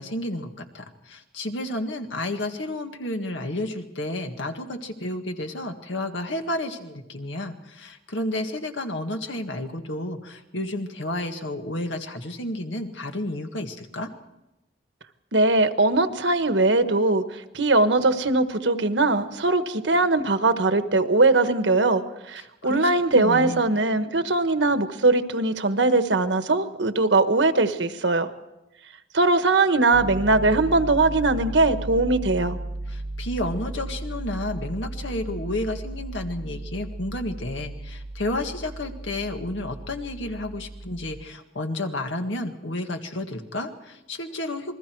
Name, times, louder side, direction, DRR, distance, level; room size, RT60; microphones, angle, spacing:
voice 1, 0.0-14.1 22.4-23.6 32.9-44.8, left 1 dB, 90° left, 5 dB, 1.9 m, -31 dB
voice 2, 15.3-22.0 22.3-28.3 29.1-32.6, right 2 dB, 75° right, 9 dB, 1.3 m, -21 dB
Piano, 29.9-41.2, right 2 dB, 60° right, 1.1 m, -35 dB
28.0 x 21.0 x 4.7 m, 0.97 s
head